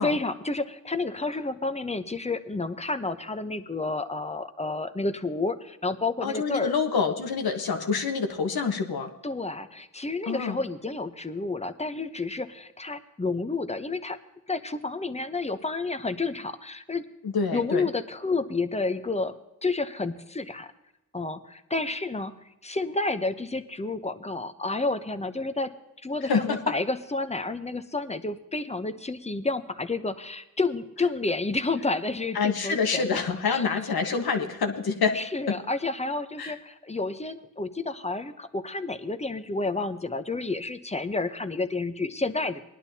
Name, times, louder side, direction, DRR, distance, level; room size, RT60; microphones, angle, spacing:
voice 1, 0.0-6.7 9.2-14.2 14.5-17.0 17.5-19.3 19.6-20.7 21.1-22.3 22.6-25.7 26.0-33.6 35.1-42.6, left 3 dB, 20° left, 9 dB, 0.8 m, -30 dB
voice 2, 6.2-9.1 10.3-10.6 17.2-17.8 26.2-26.6 32.3-35.2 35.5-35.6 36.4-36.5, left 5 dB, 85° left, 4 dB, 1.4 m, -26 dB
19.5 x 11.0 x 2.8 m, 0.94 s
cardioid pair, 70°, 36 cm